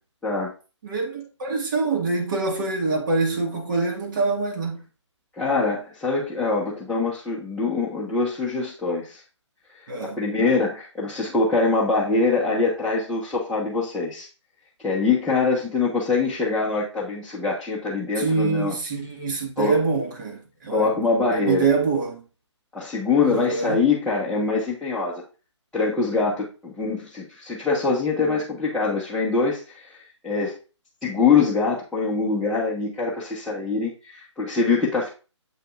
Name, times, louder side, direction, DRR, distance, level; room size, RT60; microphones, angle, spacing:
voice 1, 0.8-4.8 9.9-10.2 18.2-20.9 21.3-22.2 23.2-23.8, right 4 dB, 40° right, 1.8 m, -25 dB
voice 2, 5.4-9.2 10.0-14.3 14.8-18.7 19.6-19.7 20.7-21.7 22.7-25.2 25.7-30.0 30.2-30.6 31.0-35.1, left 4 dB, 5° left, 1.1 m, -24 dB
7.5 x 6.5 x 2.5 m
figure-of-eight pair, 150°, 16 cm